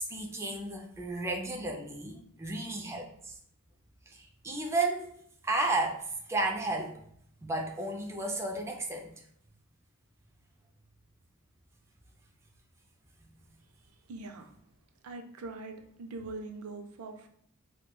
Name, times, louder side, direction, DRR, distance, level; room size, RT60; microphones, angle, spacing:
voice 1, 0.0-3.4 4.1-5.1 5.4-7.0 7.4-9.1, right 2 dB, 15° right, 0 dB, 0.4 m, -33 dB
voice 2, 14.1-14.5 15.0-17.3, right 3 dB, 90° right, 5 dB, 0.4 m, -42 dB
4.4 x 2.2 x 2.2 m, 0.68 s
head